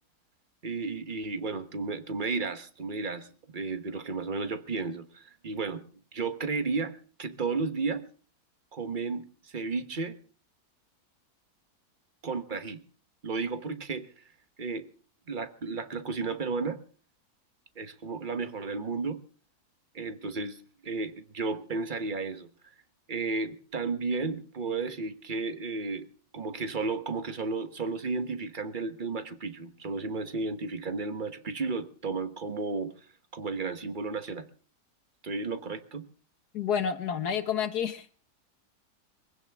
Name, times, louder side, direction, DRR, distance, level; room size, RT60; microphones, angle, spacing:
voice 1, 0.6-5.9 6.1-8.1 8.7-10.2 12.2-12.8 13.2-14.2 14.6-14.9 15.3-16.8 17.8-19.2 19.9-22.5 23.1-26.1 26.3-32.9 33.3-34.5 35.2-36.1, right 4 dB, 35° right, 1.3 m, -33 dB
voice 2, 36.5-38.1, left 8 dB, 85° left, 1.7 m, -29 dB
23.0 x 16.0 x 3.6 m
omnidirectional pair, 1.6 m